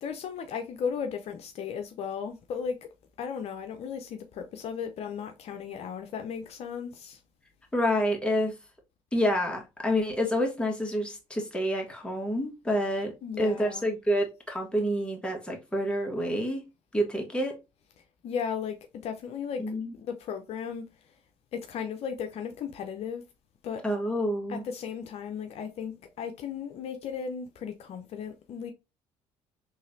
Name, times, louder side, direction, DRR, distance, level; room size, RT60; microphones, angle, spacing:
voice 1, 0.0-2.8 3.2-7.2 13.2-13.9 18.2-18.8 19.0-19.6 19.9-20.9 21.5-23.2 23.6-23.8 24.5-28.7, left 7 dB, 60° left, 0.6 m, -35 dB
voice 2, 7.7-8.5 9.1-16.6 16.9-17.6 19.6-19.9 23.8-24.6, equal, 10° left, 1.5 m, -28 dB
3.9 x 3.1 x 2.6 m
supercardioid pair, 70°, 12 cm